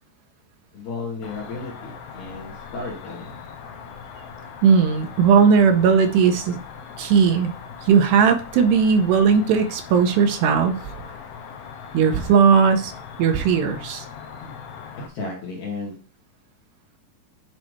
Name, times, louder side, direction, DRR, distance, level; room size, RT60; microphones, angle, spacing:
voice 1, 0.7-3.4 14.4-14.5 15.1-16.0, left 3 dB, 55° left, -1 dB, 2.3 m, -34 dB
Cricket, 1.2-15.1, left 6 dB, 75° left, 2.9 m, -40 dB
voice 2, 4.6-6.6 7.0-7.5 7.8-10.9 11.9-12.9 13.2-14.1, right 6 dB, 80° right, 6 dB, 2.9 m, -17 dB
10.5 x 4.9 x 3.2 m, 0.38 s
omnidirectional pair, 5.0 m